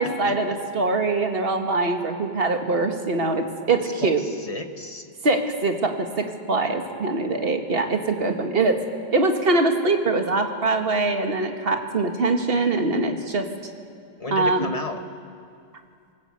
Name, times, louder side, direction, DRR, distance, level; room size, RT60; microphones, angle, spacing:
voice 1, 0.0-4.2 5.2-8.8 9.1-13.5 14.3-14.7, right 3 dB, 30° right, 4 dB, 1.7 m, -23 dB
voice 2, 3.8-5.1 14.2-15.0, left 2 dB, 25° left, 6 dB, 0.9 m, -33 dB
27.0 x 19.0 x 8.2 m, 2.3 s
omnidirectional pair, 2.1 m